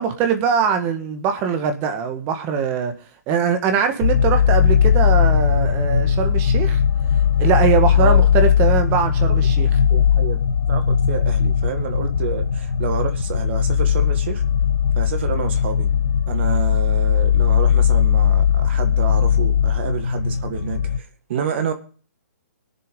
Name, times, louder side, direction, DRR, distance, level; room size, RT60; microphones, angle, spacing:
voice 1, 0.0-2.9 3.3-6.8 7.4-9.7, right 7 dB, 25° right, 7 dB, 1.5 m, -22 dB
sound 1, 4.0-21.0, left 8 dB, 80° left, 0.8 m, -18 dB
voice 2, 8.0-8.3 9.3-9.4 9.9-10.4 10.7-14.4 14.9-15.9 16.3-21.7, right 7 dB, 40° right, 8 dB, 1.7 m, -29 dB
20.0 x 6.9 x 5.2 m, 0.41 s
hypercardioid pair, 155°, 9 cm